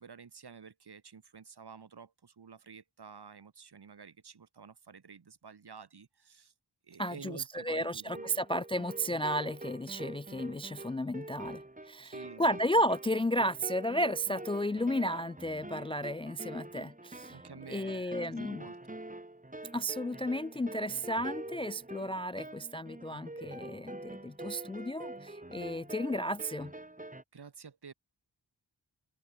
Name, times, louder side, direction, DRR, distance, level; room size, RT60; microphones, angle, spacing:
voice 1, 0.0-6.5 6.8-8.4 12.0-12.6 17.3-19.0 27.3-27.9, right 6 dB, 60° right, 2.4 m, -51 dB
voice 2, 7.0-17.4 17.7-18.7 19.7-26.7, equal, 15° left, 0.3 m, -33 dB
sound 1, 8.0-27.2, right 1 dB, 20° right, 5.4 m, -45 dB
wide cardioid pair, 80°, 43 cm